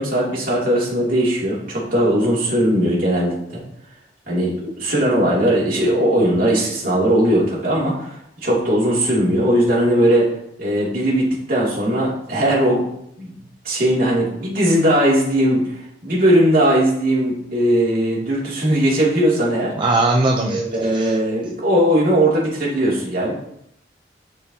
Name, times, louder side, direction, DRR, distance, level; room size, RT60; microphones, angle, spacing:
voice 1, 0.0-3.6 4.3-10.3 10.6-12.8 13.2-13.4 13.6-19.7 20.5-23.3, right 1 dB, 50° right, -5 dB, 2.5 m, -19 dB
voice 2, 19.8-21.2, right 2 dB, 25° right, 0 dB, 0.5 m, -20 dB
10.5 x 4.5 x 2.8 m, 0.75 s
head